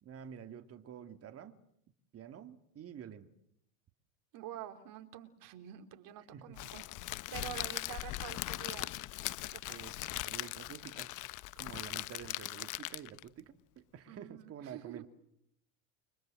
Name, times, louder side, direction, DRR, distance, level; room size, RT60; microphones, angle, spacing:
voice 1, 0.0-1.6 2.1-3.3 6.3-6.7 7.4-7.5 9.6-11.1 11.6-15.1, right 8 dB, 35° right, 8 dB, 2.3 m, -49 dB
voice 2, 4.3-6.9 7.3-9.0 9.3-9.4 9.7-9.8 14.1-15.0, right 12 dB, 50° right, 7 dB, 3.9 m, -47 dB
Crackle, 6.6-13.3, left 18 dB, 45° left, 1.1 m, -40 dB
29.5 x 24.5 x 7.7 m, 0.71 s
supercardioid pair, 115°, 43 cm